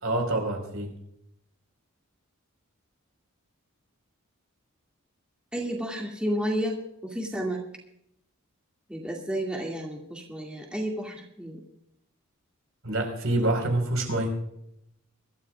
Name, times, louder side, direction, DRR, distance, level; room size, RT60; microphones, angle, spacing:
voice 1, 0.0-0.9 12.8-14.3, right 1 dB, 65° right, 3 dB, 4.6 m, -26 dB
voice 2, 5.5-7.6 8.9-11.6 13.4-13.5, equal, 5° right, -1 dB, 2.2 m, -31 dB
23.5 x 13.0 x 2.4 m, 0.75 s
head